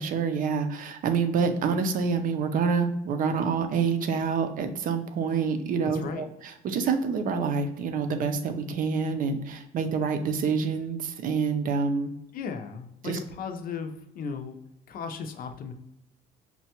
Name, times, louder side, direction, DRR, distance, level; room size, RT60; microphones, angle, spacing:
voice 1, 0.0-12.1 13.0-13.2, right 5 dB, 55° right, 7 dB, 0.5 m, -27 dB
voice 2, 5.8-6.3 12.3-14.6 14.9-15.7, left 5 dB, 55° left, 6 dB, 0.6 m, -36 dB
5.6 x 2.2 x 2.8 m, 0.84 s
cardioid pair, 110°, 17 cm